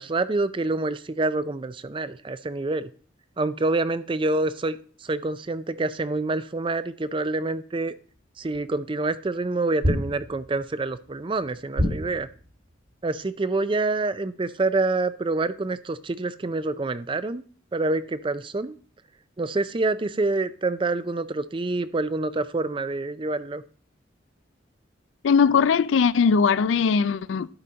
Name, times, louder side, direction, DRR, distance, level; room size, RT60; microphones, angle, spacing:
voice 1, 0.0-2.9 3.4-7.9 8.4-12.3 13.0-17.4 17.7-18.8 19.4-23.6, right 2 dB, 25° right, 0.4 m, -27 dB
sound 1, 8.5-8.6 9.8-10.6 11.8-12.5, equal, 50° right, 1.8 m, -26 dB
voice 2, 25.2-27.5, left 6 dB, 75° left, 0.4 m, -20 dB
12.0 x 4.3 x 5.2 m
head